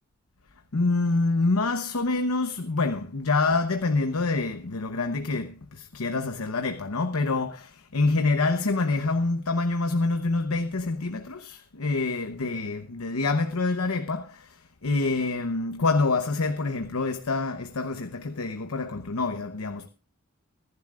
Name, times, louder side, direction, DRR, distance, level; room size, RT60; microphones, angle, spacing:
voice 1, 0.7-14.3 14.8-19.9, left 3 dB, 85° left, 0.9 m, -26 dB
25.0 x 11.0 x 2.4 m
head